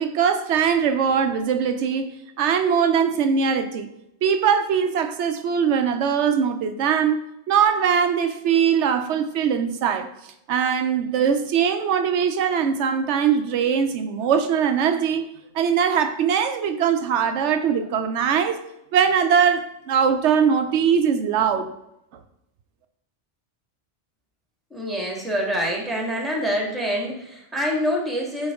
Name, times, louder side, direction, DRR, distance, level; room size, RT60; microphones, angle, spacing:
voice 1, 0.0-3.9 4.2-7.2 7.5-10.1 10.5-15.3 15.5-18.6 18.9-21.7, right 7 dB, 85° right, 0.9 m, -21 dB
voice 2, 24.7-28.5, equal, ahead, 1.5 m, -26 dB
8.7 x 4.4 x 3.5 m
omnidirectional pair, 1.2 m